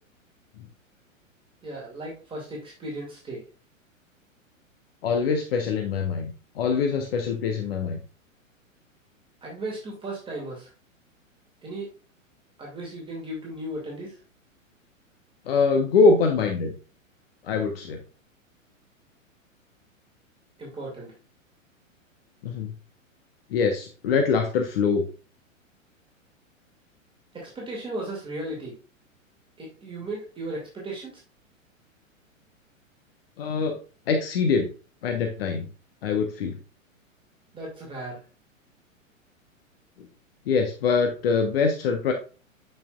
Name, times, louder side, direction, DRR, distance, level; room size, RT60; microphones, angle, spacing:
voice 1, 1.6-3.4 9.4-10.7 11.6-11.9 12.6-14.1 20.6-21.1 27.3-28.7 29.6-31.2 37.5-38.2, right 1 dB, 10° right, -3 dB, 2.4 m, -36 dB
voice 2, 5.0-8.0 15.5-16.7 17.4-18.0 22.4-22.7 23.5-25.1 33.4-33.8 34.1-34.7 35.0-35.7 36.0-36.6 40.0-40.1 40.5-42.1, left 4 dB, 45° left, 4 dB, 1.2 m, -23 dB
8.6 x 6.1 x 2.4 m, 0.34 s
figure-of-eight pair, 105°, 40 cm